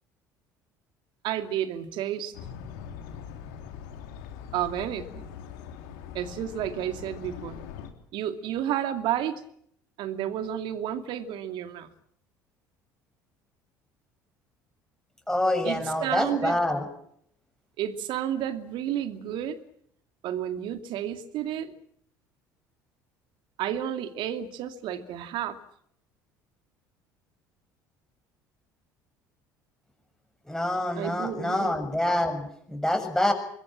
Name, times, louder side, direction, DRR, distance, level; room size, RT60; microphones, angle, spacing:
voice 1, 1.2-2.3 4.5-5.3 6.1-7.6 8.1-9.4 10.0-11.9 15.6-16.6 17.8-19.6 20.2-21.7 23.6-25.6 30.9-31.7, right 10 dB, 55° right, 9 dB, 2.5 m, -31 dB
sound 1, 2.3-7.9, left 8 dB, 65° left, 3.3 m, -42 dB
voice 2, 15.3-16.9 30.5-33.3, left 1 dB, 5° left, 5 dB, 7.3 m, -26 dB
25.5 x 22.0 x 7.4 m, 0.70 s
figure-of-eight pair, 60°, 10 cm